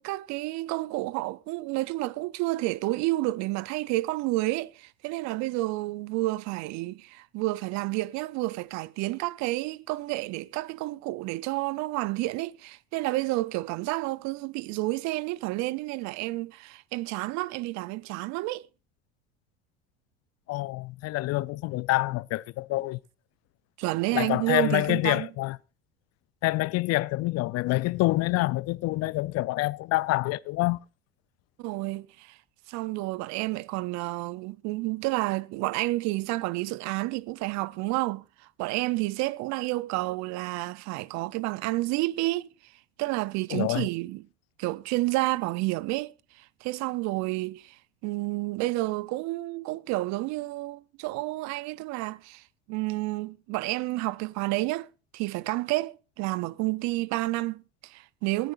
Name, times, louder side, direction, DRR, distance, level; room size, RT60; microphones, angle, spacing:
voice 1, 0.0-18.6 23.8-25.3 31.6-32.4 32.7-38.2 38.6-42.5 43.0-44.2 44.6-47.8 48.0-58.5, right 20 dB, 60° right, 0.6 m, -30 dB
voice 2, 20.5-23.0 24.1-25.6 26.4-30.8 43.5-43.9, left 19 dB, 50° left, 0.5 m, -27 dB
19.0 x 14.0 x 2.5 m
hypercardioid pair, 75°, 32 cm